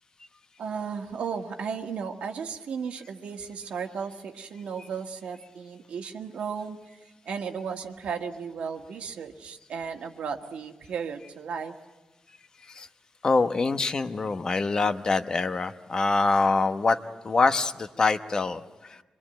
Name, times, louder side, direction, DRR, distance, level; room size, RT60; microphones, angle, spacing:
voice 1, 0.6-6.8 7.2-11.7, right 6 dB, 80° right, 5 dB, 1.7 m, -35 dB
voice 2, 13.2-17.0 17.2-19.0, left 3 dB, 35° left, 10 dB, 1.0 m, -25 dB
25.5 x 22.0 x 9.0 m, 1.1 s
wide cardioid pair, 120°, 2 cm